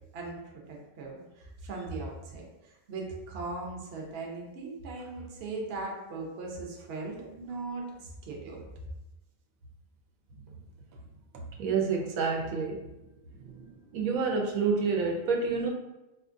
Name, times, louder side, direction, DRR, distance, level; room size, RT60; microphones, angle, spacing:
voice 1, 0.7-8.6, right 3 dB, 55° right, -1 dB, 0.8 m, -39 dB
voice 2, 11.6-12.8 13.4-13.6 13.9-15.7, right 5 dB, 80° right, 0 dB, 1.0 m, -28 dB
4.3 x 2.3 x 2.5 m, 0.99 s
omnidirectional pair, 1.4 m